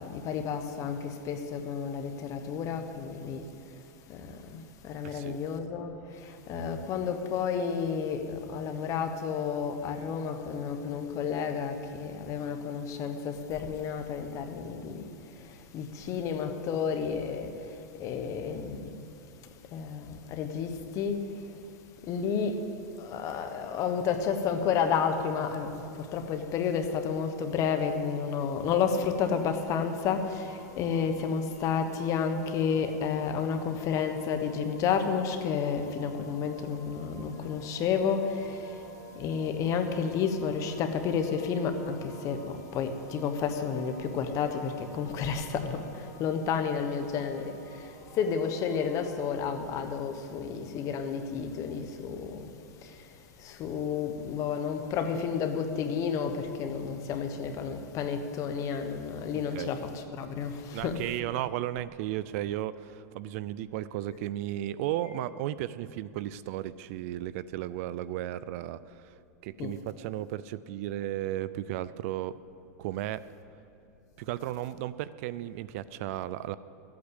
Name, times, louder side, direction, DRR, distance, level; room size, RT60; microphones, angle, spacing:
voice 1, 0.0-3.4 4.1-19.0 19.7-21.5 22.0-22.6 23.0-38.9 39.1-52.5 52.8-61.0 69.6-69.7, left 6 dB, 35° left, 1.3 m, -31 dB
voice 2, 5.0-5.4 59.5-59.7 60.7-69.1 69.4-72.4 72.8-73.2 74.2-76.6, right 13 dB, 55° right, 0.4 m, -34 dB
sound 1, 29.4-49.3, right 1 dB, 15° right, 3.6 m, -52 dB
13.5 x 8.6 x 8.1 m
supercardioid pair, 140°, 9 cm